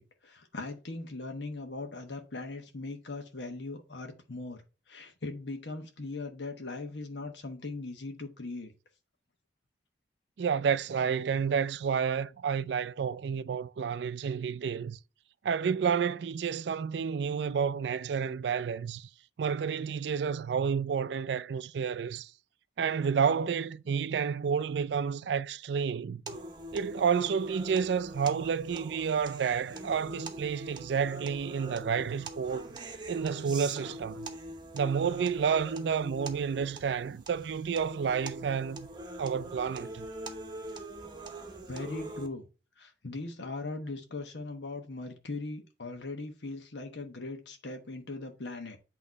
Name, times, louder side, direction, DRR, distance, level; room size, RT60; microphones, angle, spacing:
voice 1, 0.0-4.6 4.9-8.7 41.7-42.5 42.8-48.8, left 3 dB, 80° left, 1.1 m, -39 dB
voice 2, 10.4-15.0 15.4-19.1 19.4-22.3 22.8-26.2 26.7-32.7 33.1-34.3 34.7-38.9 39.2-40.1, right 6 dB, 70° right, 0.4 m, -30 dB
sound 1, 26.3-42.3, right 1 dB, 25° right, 0.9 m, -43 dB
8.3 x 3.0 x 5.1 m
head